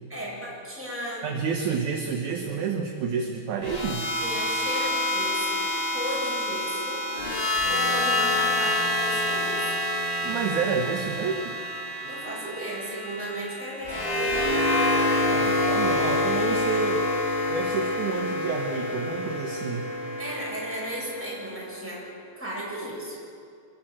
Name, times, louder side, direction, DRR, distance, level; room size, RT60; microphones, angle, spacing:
voice 1, 0.1-1.3 4.1-5.7 5.9-7.0 7.7-9.7 12.0-14.5 20.2-22.0 22.4-23.2, equal, 5° right, -5 dB, 7.5 m, -35 dB
voice 2, 1.2-4.1 10.2-11.5 15.3-17.1 17.5-19.9, right 5 dB, 65° right, 3 dB, 2.1 m, -29 dB
sound 1, 3.6-21.8, left 1 dB, 50° left, 0.6 m, -27 dB
26.0 x 14.5 x 7.8 m, 2.3 s
omnidirectional pair, 4.9 m